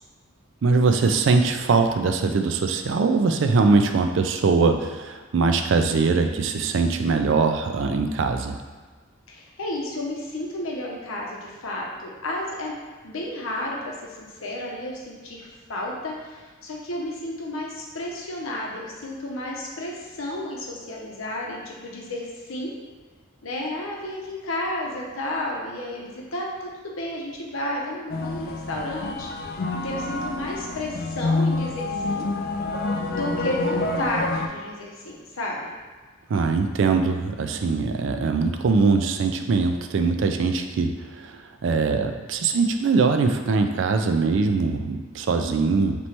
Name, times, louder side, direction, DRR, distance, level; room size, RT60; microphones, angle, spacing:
voice 1, 0.6-8.6 36.3-46.0, right 4 dB, 65° right, 6 dB, 0.4 m, -22 dB
voice 2, 9.3-12.7 13.0-22.7 23.4-32.3 33.1-35.7 45.4-45.9, left 1 dB, 85° left, -2 dB, 0.8 m, -32 dB
sound 1, 28.1-34.5, left 3 dB, 45° left, 0.3 m, -27 dB
3.2 x 3.0 x 4.2 m, 1.4 s
head